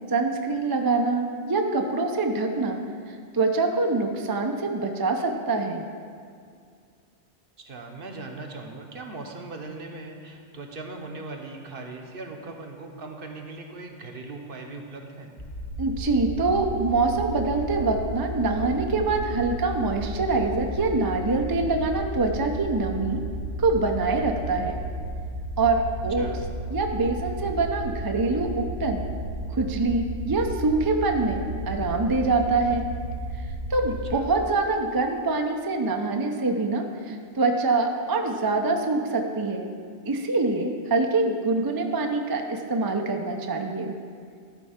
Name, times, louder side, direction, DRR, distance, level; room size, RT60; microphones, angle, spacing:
voice 1, 0.1-2.8 3.1-5.8 15.8-23.2 23.6-24.8 25.6-26.3 26.7-29.0 29.5-32.9 33.7-39.7 40.1-43.9, right 3 dB, 30° right, 3 dB, 0.4 m, -25 dB
voice 2, 7.6-15.3 26.2-26.4 34.1-34.2, right 3 dB, 55° right, 3 dB, 1.0 m, -39 dB
sound 1, 15.4-34.1, right 1 dB, 75° left, 2.6 m, -33 dB
12.0 x 4.4 x 5.7 m, 2.2 s
omnidirectional pair, 1.2 m